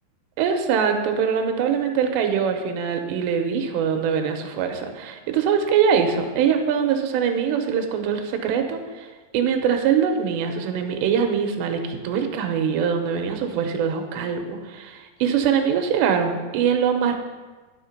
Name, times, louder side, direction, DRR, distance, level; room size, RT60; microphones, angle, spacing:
voice 1, 0.4-9.1 9.3-17.2, right 7 dB, 85° right, 5 dB, 3.0 m, -23 dB
11.5 x 5.8 x 5.4 m, 1.3 s
omnidirectional pair, 5.0 m